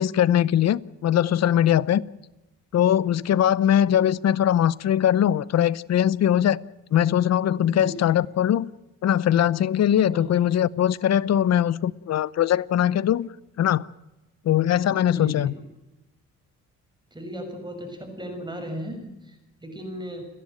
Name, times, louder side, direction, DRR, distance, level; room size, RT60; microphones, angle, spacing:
voice 1, 0.0-2.0 2.7-6.6 6.9-8.7 9.0-13.3 13.6-13.9 14.4-15.5, left 10 dB, 60° left, 0.8 m, -21 dB
voice 2, 7.7-8.1 10.1-10.4 15.1-15.6 17.1-20.3, equal, 15° right, 6.4 m, -36 dB
30.0 x 11.0 x 9.0 m
cardioid pair, 90°, 30 cm